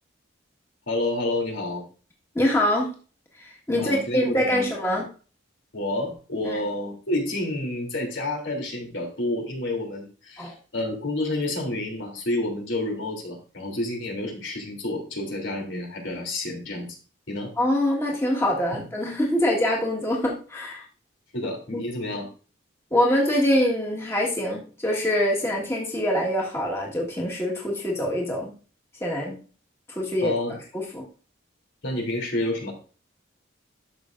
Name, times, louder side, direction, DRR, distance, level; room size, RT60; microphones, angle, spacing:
voice 1, 0.9-1.8 3.7-4.7 5.7-16.9 17.3-17.5 21.3-22.3 30.2-30.6 31.8-32.7, left 1 dB, 75° left, 1 dB, 3.0 m, -29 dB
voice 2, 2.3-2.9 3.3-5.1 6.4-6.6 10.4-10.6 17.6-20.8 21.7-21.8 22.9-28.5 29.0-29.4 29.9-30.3 30.7-31.1, left 1 dB, 15° left, -2 dB, 1.6 m, -24 dB
12.0 x 6.8 x 2.5 m, 0.37 s
head